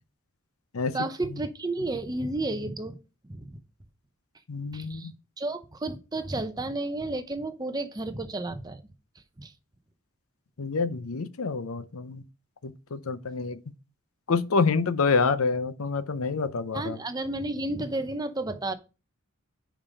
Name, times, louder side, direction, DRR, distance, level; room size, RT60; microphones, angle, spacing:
voice 1, 0.9-3.0 3.2-3.6 4.7-8.8 9.4-9.5 16.7-18.7, right 2 dB, 20° right, 0.7 m, -32 dB
voice 2, 4.5-5.1 10.6-12.2 12.6-13.6 14.3-17.0, left 4 dB, 75° left, 0.7 m, -27 dB
5.5 x 5.0 x 6.3 m
head